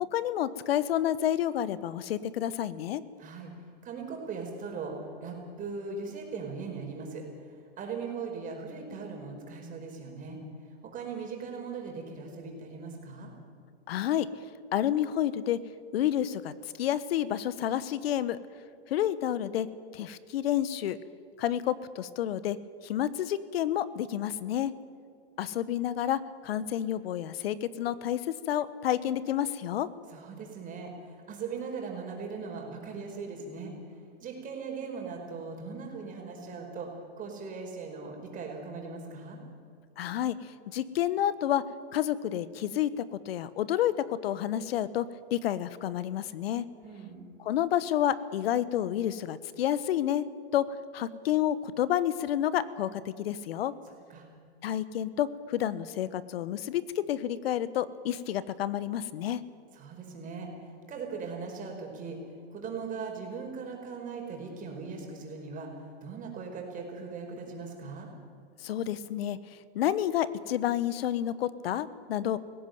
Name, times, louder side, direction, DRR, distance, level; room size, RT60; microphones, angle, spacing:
voice 1, 0.1-3.0 13.9-14.3 14.7-15.6 15.9-18.4 18.9-19.7 19.9-21.0 21.4-22.6 22.8-24.7 25.4-29.9 40.0-41.6 41.9-46.7 47.4-50.3 50.5-50.7 50.9-53.7 54.6-59.4 68.6-69.4 69.7-72.4, left 11 dB, 65° left, 16 dB, 1.2 m, -29 dB
voice 2, 3.2-3.5 3.8-10.4 10.8-13.3 30.1-33.7 34.2-36.9 37.2-39.4 46.8-47.2 54.1-54.3 59.7-68.1, right 4 dB, 25° right, 1 dB, 4.9 m, -39 dB
19.0 x 16.5 x 9.3 m, 2.2 s
hypercardioid pair, 135°, 32 cm